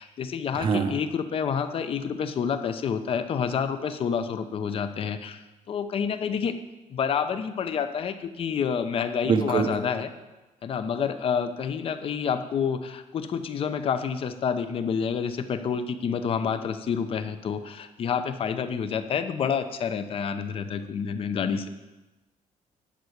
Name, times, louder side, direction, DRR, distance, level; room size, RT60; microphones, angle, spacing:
voice 1, 0.0-6.5 6.9-10.1 10.6-21.7, left 7 dB, 40° left, 10 dB, 0.7 m, -28 dB
voice 2, 0.5-0.9 9.2-9.7, right 6 dB, 35° right, 5 dB, 0.7 m, -23 dB
11.0 x 5.8 x 8.0 m, 1.1 s
cardioid pair, 170°, 14 cm